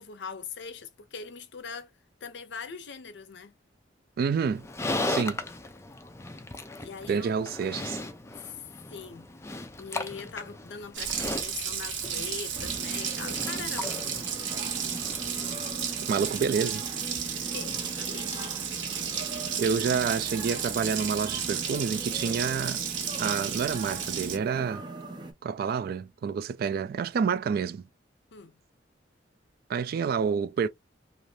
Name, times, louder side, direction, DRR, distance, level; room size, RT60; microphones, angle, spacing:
voice 1, 0.0-3.6 6.8-7.4 8.3-9.3 9.8-14.2 17.2-18.6 28.3-28.6, left 5 dB, 70° left, 0.6 m, -42 dB
voice 2, 4.2-4.7 5.1-5.4 7.1-8.0 16.1-16.8 19.6-22.8 23.2-24.8 25.4-27.9 29.7-30.7, right 6 dB, 55° right, 0.3 m, -28 dB
Livestock farm animals working animals, 4.4-15.7, left 2 dB, 15° left, 0.4 m, -37 dB
Water tap faucet, 10.9-24.4, right 8 dB, 85° right, 1.0 m, -33 dB
sound 1, 12.5-25.3, right 2 dB, 25° right, 0.7 m, -40 dB
2.6 x 2.4 x 3.1 m
head